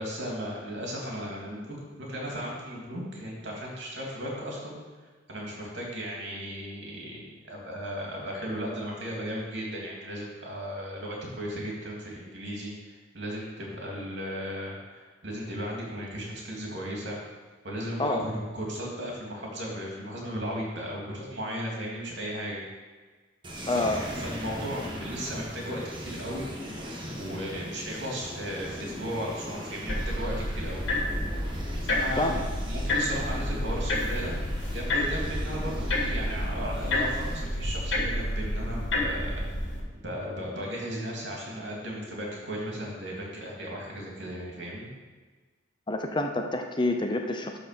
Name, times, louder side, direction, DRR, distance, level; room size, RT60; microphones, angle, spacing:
voice 1, 0.0-4.8 5.3-12.7 13.1-17.2 17.6-22.6 23.7-30.8 31.8-34.3 34.7-39.4 40.0-44.9, equal, 70° right, -2 dB, 2.8 m, -36 dB
sound 1, 23.4-37.4, equal, 25° right, 1.3 m, -40 dB
voice 2, 23.7-24.0 32.2-32.4 45.9-47.6, left 2 dB, 25° left, 4 dB, 0.7 m, -27 dB
sound 2, 29.9-39.8, left 1 dB, 85° left, 2.1 m, -29 dB
12.5 x 4.2 x 6.0 m, 1.4 s
head